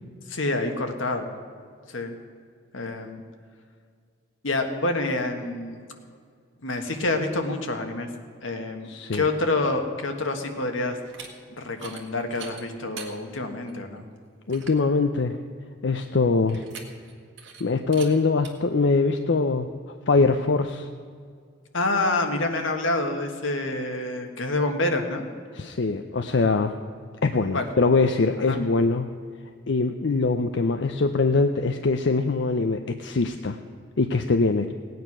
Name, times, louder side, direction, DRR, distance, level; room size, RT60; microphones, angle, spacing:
voice 1, 0.3-1.3 1.9-2.2 2.7-3.2 4.4-5.9 6.6-8.1 8.4-11.0 11.6-14.0 21.7-25.3 27.5-27.7 28.5-28.6, left 2 dB, 85° left, 5 dB, 1.5 m, -27 dB
voice 2, 8.9-9.3 14.5-15.4 15.8-16.6 17.6-19.7 20.1-20.9 25.6-26.7 27.2-29.1 29.7-33.6 34.0-34.7, left 3 dB, 65° left, 7 dB, 0.6 m, -23 dB
sound 1, 11.0-11.3 11.7-12.0 12.3-13.1 13.7-13.8 14.2-14.3 14.5-14.8 16.5-17.1 17.4-17.6 17.9-18.1 18.4-18.5, right 6 dB, 65° right, 1.8 m, -41 dB
17.5 x 9.3 x 6.0 m, 2.1 s
head